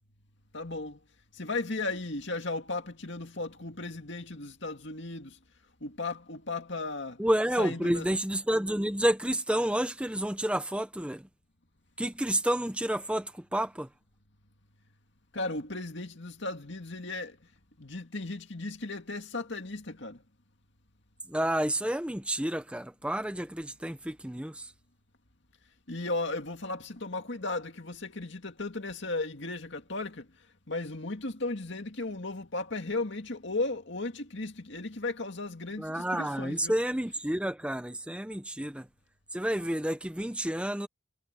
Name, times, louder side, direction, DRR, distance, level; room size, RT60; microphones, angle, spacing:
voice 1, 0.5-1.0 1.4-5.4 5.8-7.2 7.6-8.1 15.3-17.4 17.8-20.2 25.9-30.3 30.7-36.7, left 2 dB, 60° left, 2.4 m, -35 dB
voice 2, 7.2-11.2 12.0-13.9 21.3-24.7 35.8-38.8 39.3-40.9, right 1 dB, 5° right, 0.8 m, -30 dB
head